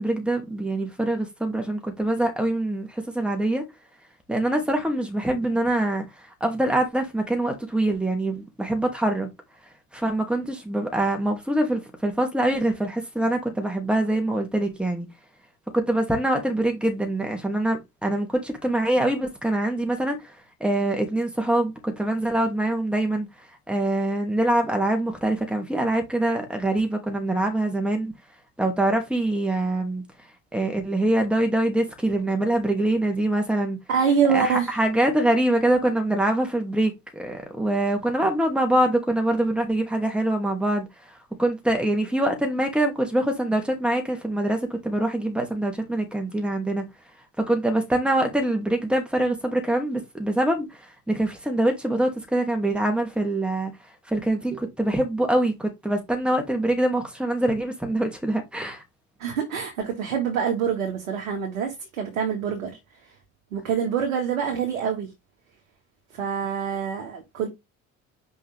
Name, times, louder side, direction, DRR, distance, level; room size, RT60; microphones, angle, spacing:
voice 1, 0.0-3.7 4.3-9.3 9.9-15.1 15.7-28.1 28.6-30.0 30.5-33.8 34.3-46.9 47.4-58.8, right 1 dB, ahead, 2.7 m, -24 dB
voice 2, 33.9-34.7 59.2-62.8 63.5-65.1 66.1-67.5, right 7 dB, 85° right, 2.0 m, -25 dB
5.7 x 5.1 x 3.6 m
hypercardioid pair, 60°, 41 cm